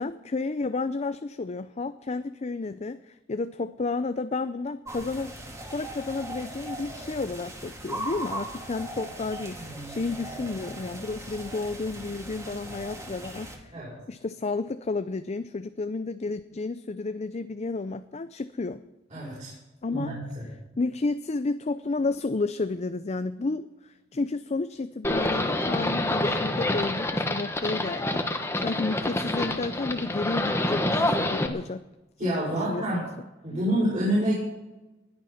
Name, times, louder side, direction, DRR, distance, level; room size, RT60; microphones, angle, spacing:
voice 1, 0.0-5.3 5.7-13.7 14.1-18.8 19.8-20.1 20.8-31.8 32.2-33.0, left 3 dB, 35° left, 11 dB, 0.5 m, -31 dB
sound 1, 4.9-13.6, right 1 dB, 15° right, 2.3 m, -39 dB
voice 2, 9.6-9.9 13.7-13.9 19.1-19.5 19.9-20.5 32.2-33.0 33.4-34.3, right 1 dB, 40° right, -8 dB, 6.3 m, -28 dB
Livestock farm animals working animals, 25.0-31.5, left 1 dB, 15° left, 1.3 m, -27 dB
20.0 x 11.0 x 5.8 m, 1.0 s
head